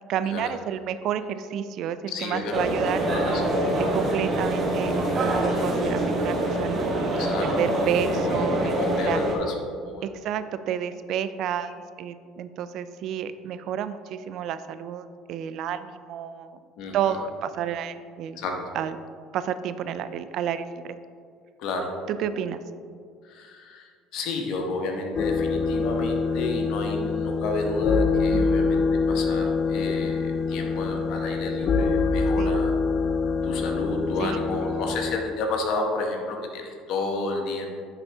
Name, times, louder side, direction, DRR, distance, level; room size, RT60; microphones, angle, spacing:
voice 1, 0.1-3.0 3.7-8.7 9.0-9.2 10.0-16.6 16.9-18.4 18.7-19.0 19.3-21.0 22.1-22.6 28.3-28.6 32.4-32.6 34.2-34.4, right 9 dB, 60° right, 12 dB, 0.3 m, -30 dB
voice 2, 2.1-2.7 3.0-3.4 7.2-7.5 8.2-9.5 9.8-10.0 16.8-17.1 18.4-18.5 21.6-21.9 23.3-23.9 24.1-32.7 33.4-37.7, left 3 dB, 65° left, 2 dB, 1.2 m, -31 dB
sound 1, 2.5-9.3, right 1 dB, 40° right, 1.4 m, -25 dB
sound 2, 25.1-35.2, left 4 dB, 50° left, 0.5 m, -25 dB
9.8 x 4.0 x 3.5 m, 2.2 s
supercardioid pair, 85°, 0 cm